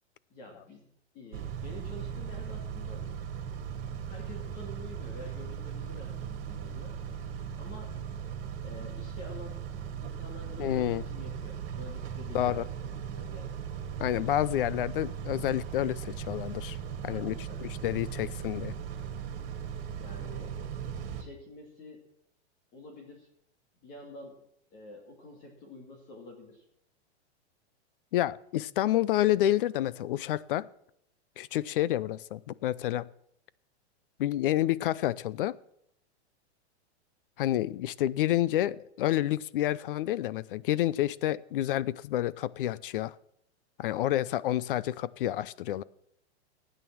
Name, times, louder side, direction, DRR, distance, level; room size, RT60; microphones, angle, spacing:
voice 1, 0.3-0.9 1.1-3.0 4.0-7.0 7.6-8.0 8.6-9.6 10.0-13.6 17.1-17.7 18.0-18.3 20.0-20.6 21.2-22.1 22.7-23.3 23.8-24.4 24.7-26.6, left 1 dB, 30° left, 0 dB, 2.6 m, -48 dB
Car / Idling / Accelerating revving vroom, 1.3-21.2, right 8 dB, 60° right, 2.6 m, -38 dB
voice 2, 10.6-11.0 12.3-12.6 14.0-16.8 17.0-17.3 17.6-18.7 28.1-30.7 31.4-33.1 34.2-35.6 37.4-43.1 43.8-45.8, left 13 dB, 50° left, 20 dB, 0.6 m, -29 dB
16.0 x 9.2 x 6.1 m, 0.73 s
supercardioid pair, 165°, 34 cm